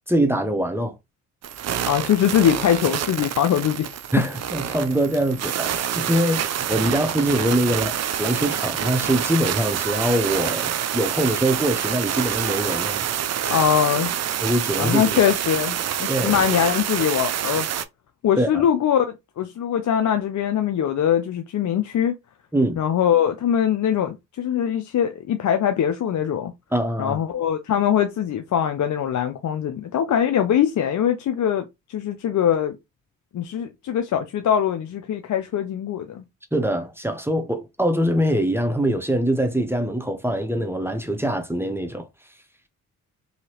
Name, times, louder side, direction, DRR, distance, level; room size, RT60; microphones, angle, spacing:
voice 1, 0.1-0.9 4.1-13.0 14.4-15.3 16.1-16.4 18.4-18.6 22.5-22.8 26.7-27.2 36.5-42.1, right 1 dB, 5° right, 0.8 m, -23 dB
sound 1, 1.4-17.8, right 9 dB, 45° right, 0.5 m, -27 dB
voice 2, 1.9-4.0 13.5-14.1 14.8-17.7 18.2-22.2 22.8-26.5 27.0-31.6 31.9-32.8 33.3-36.2, left 9 dB, 55° left, 0.6 m, -22 dB
2.8 x 2.8 x 2.9 m
supercardioid pair, 50°, 36 cm